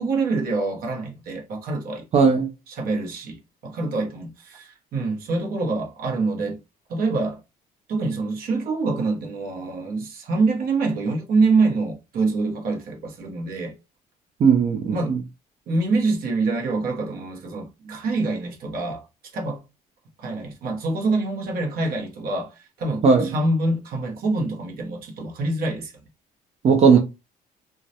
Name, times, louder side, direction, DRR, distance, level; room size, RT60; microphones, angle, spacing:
voice 1, 0.0-2.3 2.7-6.6 6.9-7.4 7.9-13.7 14.9-15.2 15.7-19.1 19.3-19.6 20.2-25.9, right 3 dB, 60° right, 0.8 m, -25 dB
voice 2, 2.1-2.5 14.4-15.2 23.0-23.3 26.6-27.0, right 5 dB, 40° right, 0.4 m, -16 dB
2.2 x 2.0 x 2.7 m
cardioid pair, 110°, 17 cm